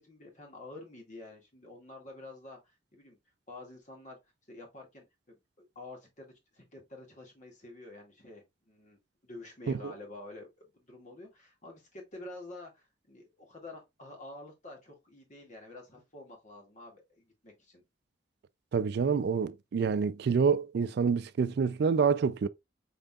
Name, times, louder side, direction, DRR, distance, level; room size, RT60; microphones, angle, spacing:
voice 1, 0.0-2.6 2.9-3.2 3.5-4.2 4.5-17.8, left 2 dB, 45° left, 1.9 m, -49 dB
voice 2, 18.7-22.5, right 6 dB, 65° right, 0.3 m, -27 dB
5.6 x 3.8 x 2.3 m
head